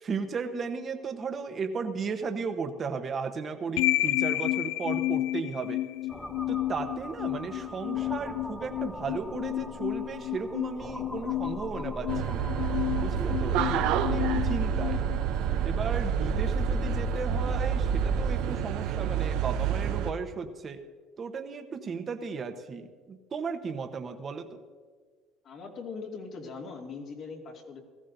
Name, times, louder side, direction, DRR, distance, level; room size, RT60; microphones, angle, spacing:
voice 1, 0.0-5.8 6.5-12.5 13.0-15.0 15.6-20.8 21.2-24.6, right 5 dB, 35° right, 6 dB, 1.1 m, -35 dB
sound 1, 3.8-15.8, left 16 dB, 80° left, 0.3 m, -31 dB
sound 2, 6.1-18.4, left 1 dB, 5° left, 0.7 m, -36 dB
sound 3, 12.1-20.1, right 10 dB, 75° right, 0.7 m, -29 dB
voice 2, 25.4-27.8, left 4 dB, 55° left, 0 dB, 2.4 m, -41 dB
18.0 x 14.5 x 2.7 m, 1.5 s
supercardioid pair, 95°, 0 cm